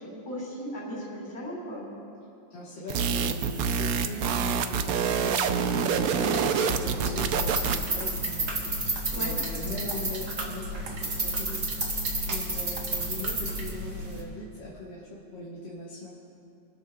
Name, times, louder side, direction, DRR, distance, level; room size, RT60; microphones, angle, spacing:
voice 1, 0.0-1.9 9.1-9.3, equal, 15° left, -6 dB, 3.5 m, -37 dB
voice 2, 2.5-16.1, left 2 dB, 70° left, -6 dB, 2.4 m, -40 dB
sound 1, 2.9-8.0, right 6 dB, 65° right, 0.9 m, -27 dB
sound 2, 6.3-13.6, right 3 dB, 85° right, 2.2 m, -41 dB
sound 3, 7.0-14.2, right 1 dB, 40° right, 2.9 m, -31 dB
28.5 x 13.0 x 2.4 m, 2.7 s
omnidirectional pair, 2.1 m